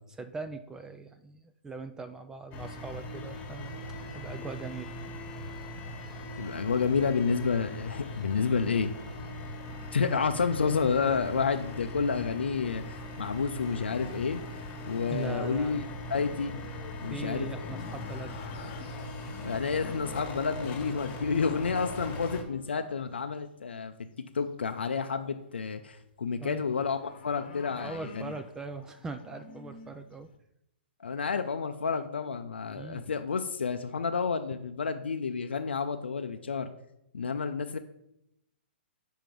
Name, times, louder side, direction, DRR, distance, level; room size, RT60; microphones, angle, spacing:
voice 1, 0.1-3.7 4.1-4.9 15.1-15.8 17.1-18.4 26.4-26.6 27.7-30.3 32.7-33.0, right 3 dB, 10° right, 9 dB, 0.3 m, -40 dB
sound 1, 2.5-22.4, left 1 dB, 25° left, 1.5 m, -40 dB
voice 2, 6.4-8.9 9.9-15.8 16.1-16.5 17.0-17.5 19.4-23.9 24.3-28.0 31.0-36.7 37.1-37.8, left 5 dB, 85° left, 7 dB, 0.5 m, -30 dB
sound 2, 15.0-23.2 24.3-24.8 25.2-30.4, left 4 dB, 60° left, 0.9 m, -50 dB
6.0 x 4.7 x 5.2 m, 0.82 s
hypercardioid pair, 130°, 6 cm